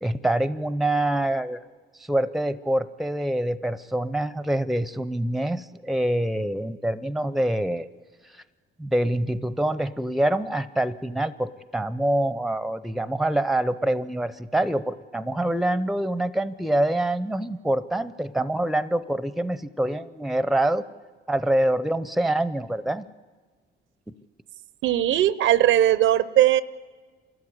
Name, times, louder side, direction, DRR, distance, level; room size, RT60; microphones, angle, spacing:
voice 1, 0.0-1.6 2.0-7.9 8.3-8.4 8.8-20.8 21.3-23.0, right 1 dB, ahead, 16 dB, 0.7 m, -25 dB
voice 2, 24.8-26.6, right 13 dB, 80° right, 17 dB, 0.7 m, -19 dB
28.0 x 13.5 x 9.7 m, 1.4 s
cardioid pair, 90°, 20 cm